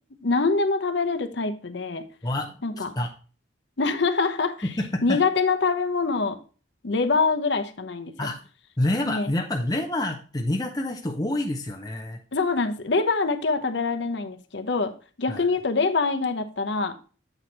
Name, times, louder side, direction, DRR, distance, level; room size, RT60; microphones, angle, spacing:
voice 1, 0.2-2.0 2.6-2.9 3.8-4.7 5.0-6.4 6.8-8.1 9.1-9.3 12.3-14.9 15.2-16.9, left 4 dB, 65° left, 8 dB, 0.8 m, -24 dB
voice 2, 2.2-3.1 4.6-5.2 8.2-8.4 8.8-12.2 15.3-15.5, left 1 dB, 20° left, 2 dB, 0.6 m, -28 dB
8.0 x 4.3 x 4.5 m, 0.37 s
head